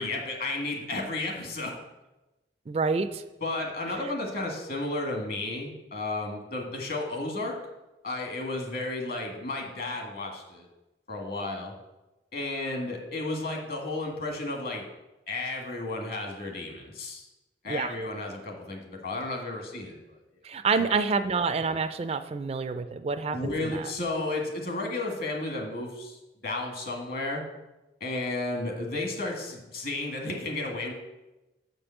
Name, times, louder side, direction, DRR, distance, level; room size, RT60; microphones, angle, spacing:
voice 1, 0.0-1.7 3.4-7.6 8.0-10.7 11.1-11.7 12.3-14.8 15.3-17.3 17.6-20.0 20.7-20.8 23.3-26.2 26.4-27.4 28.0-30.9, left 2 dB, 55° left, 2 dB, 1.9 m, -33 dB
voice 2, 2.7-3.2 17.7-17.9 20.4-23.9, right 4 dB, 35° right, 10 dB, 0.4 m, -28 dB
7.0 x 5.3 x 7.1 m, 1.0 s
head